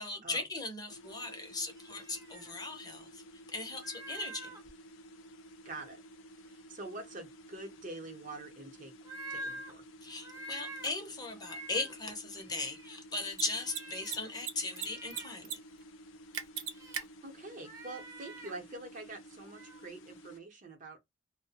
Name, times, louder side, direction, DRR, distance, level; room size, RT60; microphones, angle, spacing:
voice 1, 0.0-3.2 3.5-4.5 10.0-15.6, left 3 dB, 20° left, 0.6 m, -38 dB
sound 1, 0.9-20.4, equal, 75° left, 0.4 m, -53 dB
sound 2, 1.0-1.2 1.7-2.5 3.7-4.7 6.9-7.2 9.0-9.7 10.2-10.9 11.4-11.9 12.4-13.0 13.4-14.3 14.7-15.4 16.7-17.0 17.6-18.5 19.4-19.9, right 1 dB, 15° right, 0.6 m, -47 dB
voice 2, 5.6-6.0 6.4-8.9 9.3-9.8 17.2-21.0, right 2 dB, 40° right, 0.8 m, -45 dB
Mechanisms, 10.8-10.9 13.2-13.4 13.7-13.8 14.1-14.9 15.1-15.6 15.8-15.9 16.3-17.0, right 8 dB, 70° right, 0.5 m, -36 dB
2.2 x 2.1 x 2.7 m
head